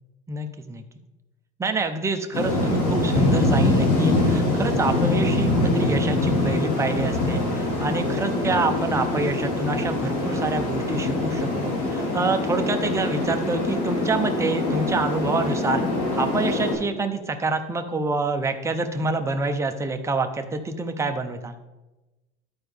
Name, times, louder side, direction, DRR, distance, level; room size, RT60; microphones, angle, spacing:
voice 1, 0.3-0.8 1.6-15.8 16.1-21.6, right 3 dB, 15° right, 5 dB, 0.7 m, -27 dB
sound 1, 2.3-16.7, left 2 dB, 75° left, 2.7 m, -24 dB
12.5 x 4.5 x 3.5 m, 1.1 s
cardioid pair, 125°, 21 cm